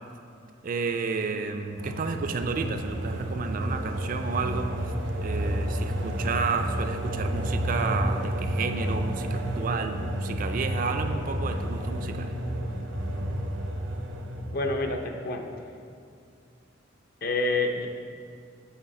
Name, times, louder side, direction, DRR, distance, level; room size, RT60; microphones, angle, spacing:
voice 1, 0.6-4.9 5.2-12.3, right 4 dB, 45° right, 7 dB, 0.4 m, -31 dB
sound 1, 1.7-14.8, equal, 85° right, 0.8 m, -30 dB
voice 2, 14.5-15.5 17.2-17.9, left 2 dB, 50° left, 3 dB, 0.6 m, -27 dB
7.9 x 4.1 x 4.1 m, 2.3 s
head